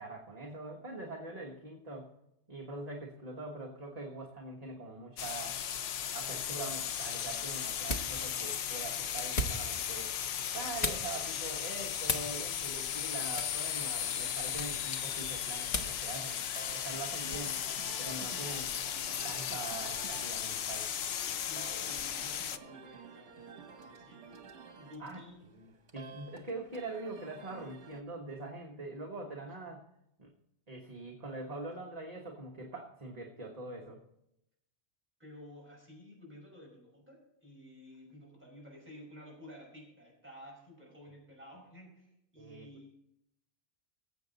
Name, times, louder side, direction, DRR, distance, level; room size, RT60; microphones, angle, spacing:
voice 1, 0.0-2.1 2.5-5.6 6.1-10.1 10.5-17.6 18.0-18.7 19.2-20.9 25.0-25.2 25.5-29.9 30.2-30.3 30.7-34.0 42.4-42.7, right 2 dB, 35° right, -1 dB, 1.4 m, -43 dB
sound 1, 5.2-22.6, left 9 dB, 65° left, 0.8 m, -36 dB
sound 2, 6.9-16.1, left 2 dB, 35° left, 1.1 m, -41 dB
sound 3, 16.5-28.0, right 5 dB, 75° right, 1.5 m, -51 dB
voice 2, 21.5-24.5 24.8-25.4 35.2-43.0, left 1 dB, 10° right, -3 dB, 5.4 m, -52 dB
19.0 x 8.0 x 4.0 m, 0.82 s
omnidirectional pair, 1.2 m